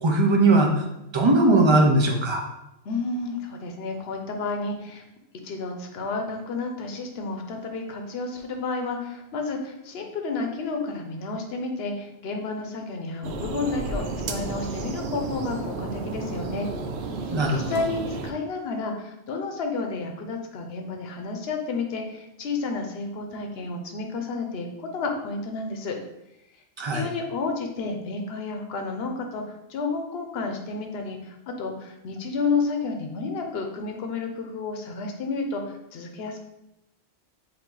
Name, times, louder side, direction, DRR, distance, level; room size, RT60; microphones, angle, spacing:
voice 1, 0.0-0.8 1.1-2.5 17.3-17.8 26.8-27.1, right 2 dB, 35° right, 2 dB, 0.5 m, -19 dB
voice 2, 2.8-5.0 5.4-16.7 17.5-26.0 26.9-29.4 29.7-36.4, left 3 dB, 70° left, 3 dB, 0.9 m, -31 dB
sound 1, 13.2-18.3, right 3 dB, 80° right, 0.9 m, -32 dB
4.8 x 2.6 x 3.9 m, 0.87 s
omnidirectional pair, 1.1 m